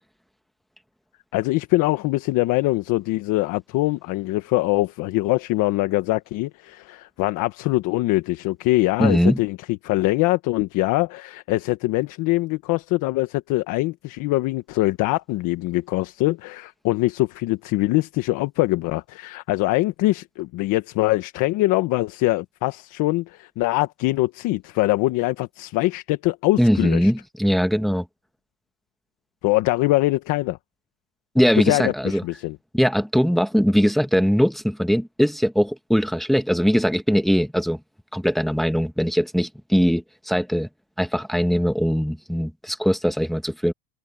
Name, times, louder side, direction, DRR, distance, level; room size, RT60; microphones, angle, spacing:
voice 1, 1.3-9.6 9.8-27.1 29.4-30.6 31.5-32.6, left 19 dB, 65° left, 1.4 m, -23 dB
voice 2, 9.0-9.4 26.6-28.0 31.3-32.2 32.7-37.8 38.1-40.7 41.0-43.7, equal, ahead, 1.6 m, -21 dB
supercardioid pair, 115°, 34 cm